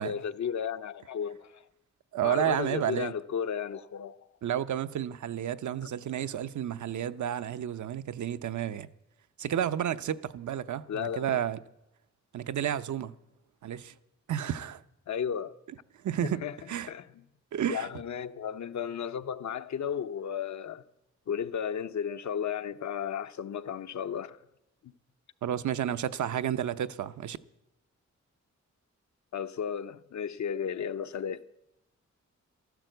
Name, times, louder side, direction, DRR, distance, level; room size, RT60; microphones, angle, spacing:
voice 1, 0.0-1.6 2.2-4.2 10.9-11.4 15.1-15.5 16.2-16.6 16.9-17.1 17.7-20.8 21.3-24.4 24.8-24.9 29.3-31.4, left 8 dB, 70° left, 0.7 m, -34 dB
voice 2, 2.1-3.1 4.4-8.9 9.4-11.6 12.3-13.1 13.6-13.9 14.3-14.8 16.0-16.4 16.7-16.9 17.5-17.9 25.4-27.4, right 10 dB, 80° right, 0.7 m, -31 dB
14.0 x 13.0 x 7.8 m
wide cardioid pair, 125°, 29 cm